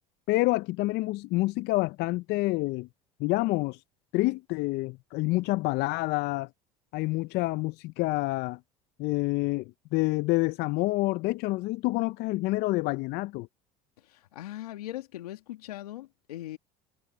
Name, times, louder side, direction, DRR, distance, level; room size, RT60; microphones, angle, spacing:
voice 1, 0.3-2.9 3.2-3.8 4.1-6.5 6.9-8.6 9.0-13.5, left 21 dB, 60° left, 0.6 m, -28 dB
voice 2, 14.0-16.6, left 14 dB, 90° left, 1.8 m, -40 dB
hypercardioid pair, 75°, 19 cm